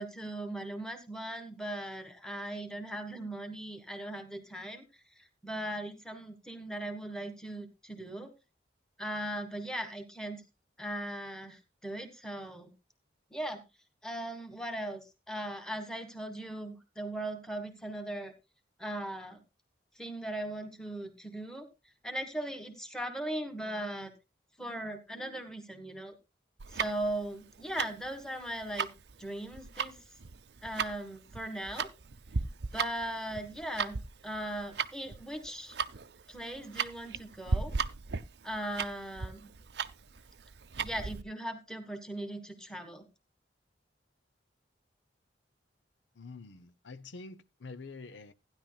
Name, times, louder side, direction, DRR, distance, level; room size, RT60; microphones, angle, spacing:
voice 1, 0.0-4.8 5.4-8.3 9.0-10.4 10.8-12.7 13.3-13.6 14.0-18.3 18.8-19.4 19.9-21.7 22.0-24.1 24.6-26.2 26.7-28.9 29.2-30.0 30.6-31.9 32.7-34.0 34.2-35.8 36.3-37.7 38.4-39.5 40.8-43.1, right 1 dB, 5° left, 1.5 m, -38 dB
Tick-tock, 26.6-41.2, right 5 dB, 65° right, 0.6 m, -36 dB
voice 2, 46.2-48.3, left 3 dB, 80° left, 0.7 m, -47 dB
15.5 x 10.5 x 2.3 m
head